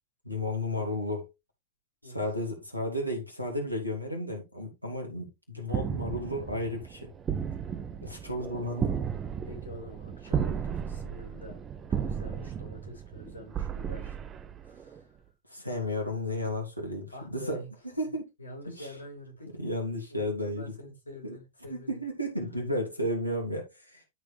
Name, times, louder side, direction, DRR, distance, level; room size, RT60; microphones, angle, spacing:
voice 1, 0.2-1.3 2.0-7.1 8.0-9.0 15.5-17.6 18.0-18.2 18.8-18.9 19.6-20.6 21.2-21.4 21.7-24.1, left 1 dB, 90° right, 2.8 m, -33 dB
voice 2, 2.0-2.3 8.0-8.1 9.5-11.6 11.9-14.2 14.6-15.1 17.1-17.7 18.1-19.5 20.1-22.0, left 1 dB, 80° left, 4.9 m, -46 dB
sound 1, 5.7-15.0, right 8 dB, 25° right, 0.9 m, -34 dB
12.5 x 4.9 x 3.3 m
figure-of-eight pair, 90°, 0 cm